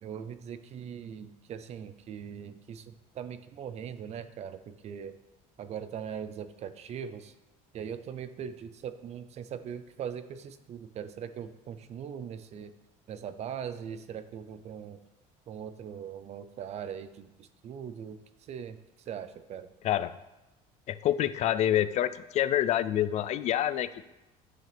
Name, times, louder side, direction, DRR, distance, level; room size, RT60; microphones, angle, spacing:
voice 1, 0.0-5.1 5.6-7.3 7.7-12.7 13.1-15.0 15.5-18.2 18.5-18.8 19.1-19.7, right 8 dB, 40° right, 12 dB, 0.6 m, -40 dB
voice 2, 20.9-24.0, left 11 dB, 45° left, 15 dB, 0.4 m, -27 dB
11.0 x 6.3 x 3.5 m, 0.97 s
cardioid pair, 130°, 16 cm